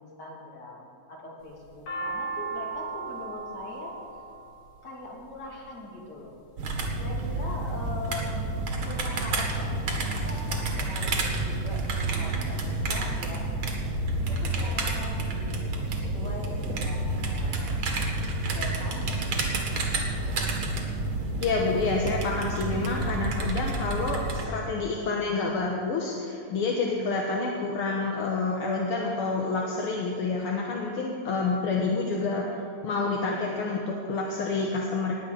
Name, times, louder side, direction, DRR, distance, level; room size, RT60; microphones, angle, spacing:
voice 1, 0.0-4.0 4.8-6.4 7.0-8.5 8.8-12.6 12.9-13.5 14.3-17.9 18.4-19.4, left 2 dB, 35° left, -3 dB, 3.1 m, -41 dB
sound 1, 1.4-5.7 6.5-7.0 7.6-8.2 8.6-8.7 8.8-9.7, right 4 dB, 75° left, 3.9 m, -37 dB
sound 2, 6.6-24.5, right 2 dB, 45° right, 2.1 m, -29 dB
voice 2, 21.4-32.5 32.8-35.1, left 3 dB, 55° left, -1 dB, 1.7 m, -28 dB
19.0 x 6.7 x 8.3 m, 2.4 s
omnidirectional pair, 3.6 m